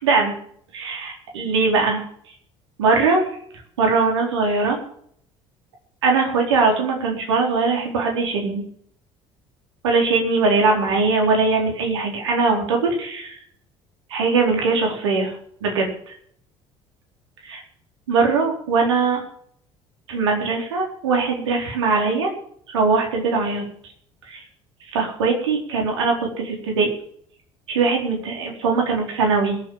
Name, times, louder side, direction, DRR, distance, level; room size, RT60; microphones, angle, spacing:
voice 1, 0.0-0.3 0.7-2.0 2.8-3.3 3.8-4.8 6.0-8.6 9.8-13.4 14.1-16.1 17.5-17.6 18.1-19.2 20.1-22.3 22.7-23.6 24.2-24.4 24.9-26.9 27.7-29.6, right 4 dB, 70° right, 1 dB, 4.1 m, -21 dB
21.0 x 7.6 x 7.4 m, 0.63 s
figure-of-eight pair, 55°, 15 cm